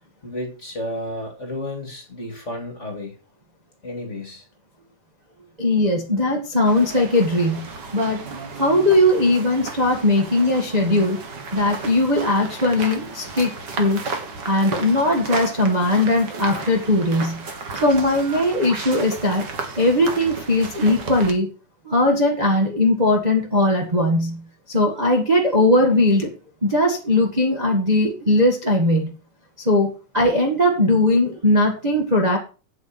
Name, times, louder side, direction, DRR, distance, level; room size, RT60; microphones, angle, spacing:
voice 1, 0.2-3.2 3.8-4.4, left 1 dB, 25° left, 3 dB, 2.1 m, -32 dB
voice 2, 5.6-8.2 8.6-11.2 11.5-14.0 14.5-17.4 17.8-19.4 19.8-21.5 21.8-24.4 24.7-26.3 26.6-29.1 29.6-29.9 30.1-32.4, left 1 dB, 20° right, 0 dB, 1.3 m, -19 dB
sound 1, 6.6-21.3, right 4 dB, 45° right, 1.8 m, -34 dB
8.4 x 8.1 x 5.9 m, 0.35 s
omnidirectional pair, 3.4 m